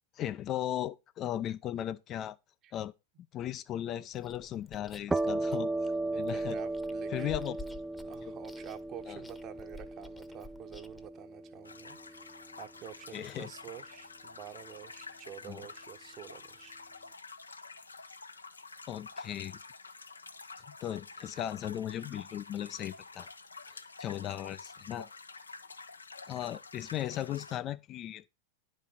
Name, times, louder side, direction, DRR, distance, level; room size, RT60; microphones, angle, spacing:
voice 1, 0.2-2.4 2.7-2.9 3.3-5.9 6.2-6.6 7.1-7.6 9.1-9.2 13.1-13.5 15.5-15.6 18.9-19.6 20.7-23.3 23.7-25.1 26.3-28.3, left 12 dB, 35° left, 0.6 m, -37 dB
Chewing mastication, 4.1-11.1, left 2 dB, 10° left, 1.1 m, -52 dB
sound 1, 5.1-12.6, right 2 dB, 10° right, 0.5 m, -36 dB
voice 2, 6.0-7.4 8.0-16.8, right 11 dB, 35° right, 1.3 m, -48 dB
sound 2, 11.6-27.6, left 4 dB, 80° left, 0.8 m, -49 dB
11.0 x 5.4 x 5.5 m
figure-of-eight pair, 90°, 0 cm